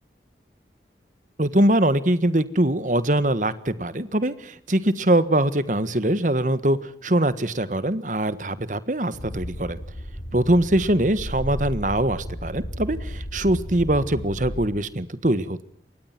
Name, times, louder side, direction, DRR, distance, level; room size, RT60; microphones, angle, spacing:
voice 1, 1.4-9.8 10.3-15.6, right 1 dB, 45° right, 14 dB, 1.5 m, -22 dB
sound 1, 9.1-14.7, equal, 85° left, 7.4 m, -34 dB
27.5 x 23.0 x 6.0 m, 0.69 s
head